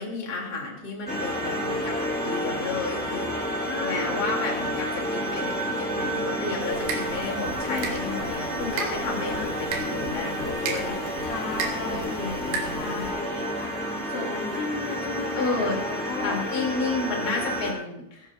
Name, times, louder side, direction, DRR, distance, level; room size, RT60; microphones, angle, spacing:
voice 1, 0.0-3.5 3.8-11.4 11.9-13.1 15.3-15.8 16.2-18.3, left 3 dB, 25° left, -1 dB, 2.7 m, -32 dB
sound 1, 1.1-17.7, equal, 5° left, 1.1 m, -30 dB
voice 2, 3.6-4.3 7.6-8.0 9.1-9.5 11.2-12.3 12.7-13.8 14.1-16.4, left 4 dB, 70° left, 0 dB, 3.1 m, -35 dB
sound 2, 6.6-13.1, right 5 dB, 70° right, 3.2 m, -36 dB
15.5 x 15.0 x 2.6 m, 0.81 s
omnidirectional pair, 5.2 m